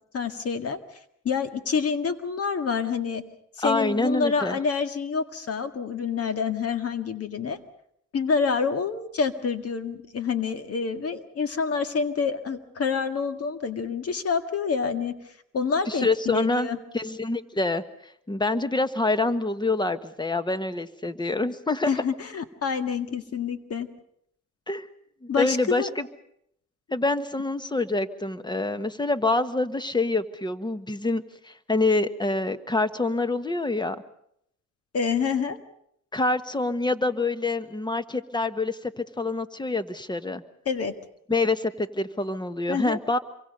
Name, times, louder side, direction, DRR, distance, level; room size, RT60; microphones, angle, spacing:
voice 1, 0.1-0.8 1.2-3.2 3.6-7.6 8.1-15.1 15.5-16.8 21.8-23.9 25.3-25.9 34.9-35.6 40.7-40.9 42.7-43.0, left 5 dB, 50° left, 9 dB, 1.9 m, -27 dB
voice 2, 3.6-4.6 15.9-16.7 16.9-17.8 18.3-21.9 24.7-24.9 25.2-26.1 26.9-34.0 36.1-40.4 41.3-43.2, left 2 dB, 15° left, 12 dB, 1.3 m, -26 dB
27.0 x 24.0 x 5.5 m, 0.72 s
cardioid pair, 90°, 30 cm